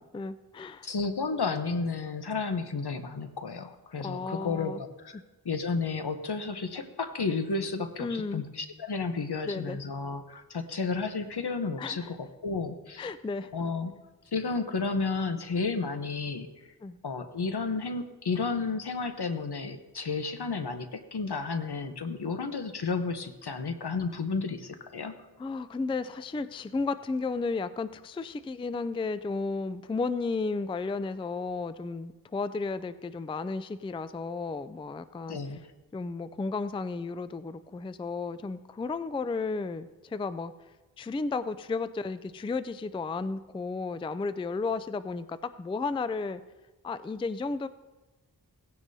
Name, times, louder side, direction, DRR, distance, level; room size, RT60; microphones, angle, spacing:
voice 1, 0.1-0.9 4.0-4.8 5.1-5.2 8.0-8.4 9.4-9.8 11.8-12.1 13.0-13.5 16.8-17.0 25.4-35.6 35.9-40.5 41.0-46.4 46.8-47.7, left 4 dB, 15° left, 13 dB, 0.3 m, -33 dB
voice 2, 0.8-13.1 13.5-13.9 14.3-16.5 17.0-25.1 35.3-35.6, left 4 dB, 70° left, 8 dB, 0.9 m, -32 dB
17.0 x 9.7 x 2.7 m, 1.1 s
wide cardioid pair, 50°, 40 cm